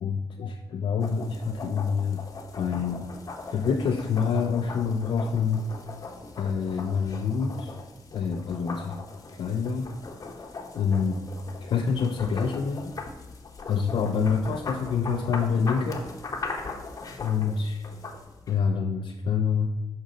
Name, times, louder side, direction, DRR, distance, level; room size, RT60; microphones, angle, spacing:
voice 1, 0.0-2.2 2.5-3.1 3.5-5.7 6.4-7.8 8.1-9.0 9.4-9.9 10.8-11.1 11.6-12.9 13.7-16.0 17.2-17.8 18.5-19.7, left 6 dB, 75° left, 3 dB, 0.5 m, -26 dB
sound 1, 1.0-18.6, left 3 dB, 40° left, 1.0 m, -39 dB
6.2 x 5.3 x 3.8 m, 1.1 s
wide cardioid pair, 140°, 9 cm